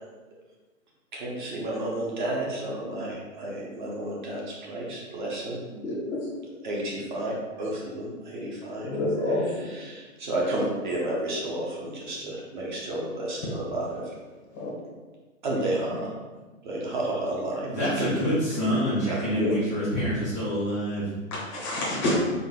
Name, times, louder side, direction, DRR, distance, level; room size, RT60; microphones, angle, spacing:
voice 1, 1.1-5.6 6.6-8.9 9.5-14.1 15.4-16.1 16.6-18.3 19.0-19.2, right 1 dB, 35° right, -3 dB, 0.8 m, -31 dB
voice 2, 5.8-6.2 8.8-9.4 14.5-14.7 19.3-19.5 21.3-22.1, left 1 dB, 20° left, -6 dB, 0.6 m, -27 dB
voice 3, 17.7-21.1, equal, 15° right, -14 dB, 0.4 m, -26 dB
3.8 x 2.5 x 3.6 m, 1.3 s
hypercardioid pair, 155°, 41 cm